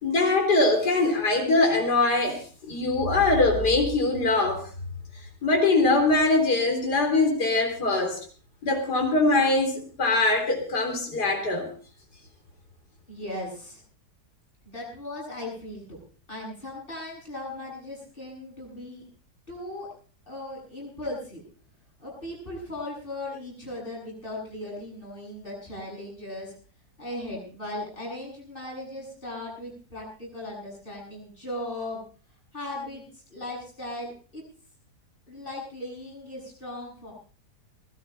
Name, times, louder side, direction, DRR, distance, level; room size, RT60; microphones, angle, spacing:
voice 1, 0.0-2.4 2.7-4.6 5.4-8.2 8.6-11.7, left 2 dB, 70° left, 1 dB, 4.2 m, -22 dB
voice 2, 13.1-13.8 14.7-16.0 16.3-19.0 19.5-19.9 20.3-21.4 22.0-26.5 27.0-32.0 32.5-34.4 35.3-37.1, left 1 dB, 30° left, -3 dB, 8.2 m, -37 dB
20.0 x 13.0 x 4.3 m, 0.41 s
omnidirectional pair, 1.8 m